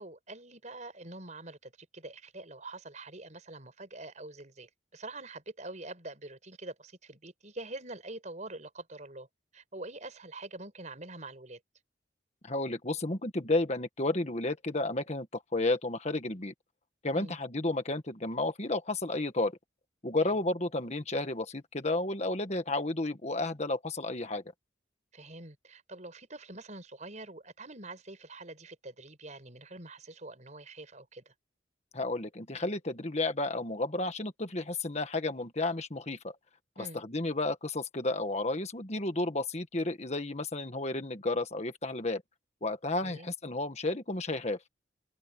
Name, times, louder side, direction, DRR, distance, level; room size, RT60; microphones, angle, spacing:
voice 1, 0.0-9.3 9.5-11.6 17.1-17.4 20.2-20.4 25.1-31.3 36.8-37.0 43.0-43.3, right 2 dB, 40° right, 5.5 m, -45 dB
voice 2, 12.4-16.5 17.0-19.6 20.0-24.4 31.9-36.3 36.8-42.2 42.6-44.6, left 2 dB, 35° left, 1.6 m, -32 dB
open air
head